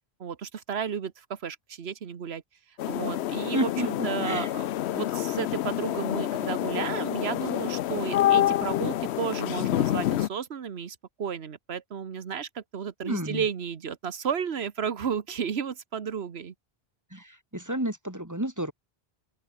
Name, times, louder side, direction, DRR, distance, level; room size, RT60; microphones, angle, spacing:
voice 1, 0.2-2.4 2.9-4.6 4.9-16.5, right 7 dB, 75° right, 1.4 m, -33 dB
sound 1, 2.8-10.3, left 12 dB, 85° left, 0.9 m, -27 dB
voice 2, 3.5-4.5 13.0-13.4 17.1-18.7, right 1 dB, 15° right, 2.6 m, -31 dB
open air
omnidirectional pair, 1.1 m